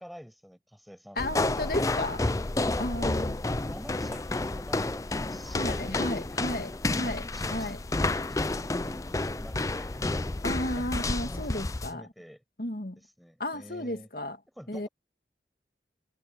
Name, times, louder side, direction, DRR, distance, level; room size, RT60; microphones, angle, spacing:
voice 1, 0.0-1.4 2.5-3.2 3.7-6.5 7.0-7.8 8.0-10.0 10.7-12.4 13.0-14.1 14.6-14.9, equal, ahead, 6.3 m, -47 dB
voice 2, 1.2-2.2 2.8-3.4 5.5-7.2 7.5-7.8 10.4-12.0 12.6-13.0 13.4-14.4 14.7-14.9, left 1 dB, 55° left, 2.1 m, -33 dB
sound 1, 1.2-11.9, left 2 dB, 20° left, 0.4 m, -30 dB
head